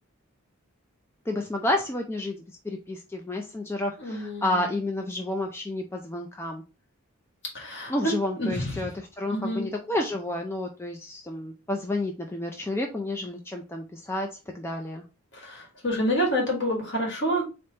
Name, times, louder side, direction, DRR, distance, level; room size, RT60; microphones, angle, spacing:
voice 1, 1.3-6.6 7.9-15.0, left 1 dB, 10° left, 2 dB, 0.4 m, -30 dB
voice 2, 4.0-4.7 7.5-7.9 8.4-8.9 9.3-9.7 15.3-17.4, equal, 55° left, -1 dB, 1.8 m, -28 dB
4.2 x 3.4 x 2.8 m, 0.30 s
head